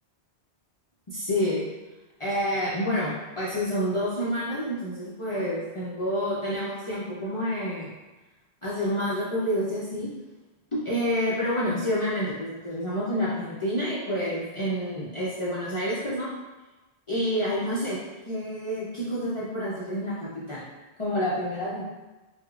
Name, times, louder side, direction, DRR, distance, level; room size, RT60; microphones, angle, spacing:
voice 1, 1.1-1.7 2.2-7.9 8.6-10.1 10.7-16.3 17.1-18.0 18.3-20.6 21.0-21.8, equal, 40° left, -9 dB, 0.5 m, -28 dB
4.7 x 2.1 x 2.4 m, 1.1 s
omnidirectional pair, 1.1 m